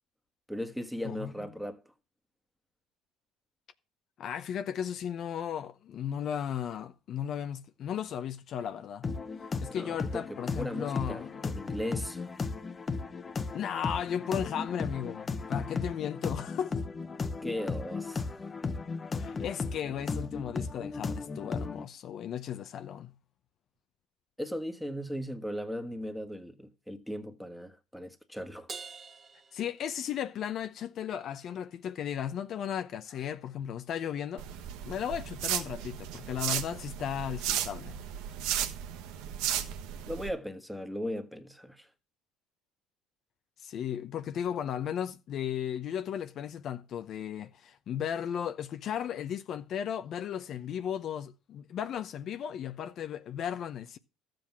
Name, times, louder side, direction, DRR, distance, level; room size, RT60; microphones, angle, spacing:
voice 1, 0.5-1.8 9.7-12.3 17.4-18.4 24.4-28.7 40.1-41.9, equal, ahead, 1.5 m, -37 dB
voice 2, 4.2-9.1 9.6-11.7 13.5-16.8 19.2-23.1 29.5-34.5 34.8-38.0 43.6-54.0, left 9 dB, 50° left, 0.8 m, -35 dB
sound 1, 9.0-21.8, left 4 dB, 25° left, 1.0 m, -36 dB
Crash cymbal, 28.7-30.4, right 5 dB, 30° right, 1.9 m, -46 dB
sound 2, 34.4-40.3, right 10 dB, 75° right, 1.3 m, -35 dB
13.5 x 7.8 x 5.9 m
supercardioid pair, 95°, 0 cm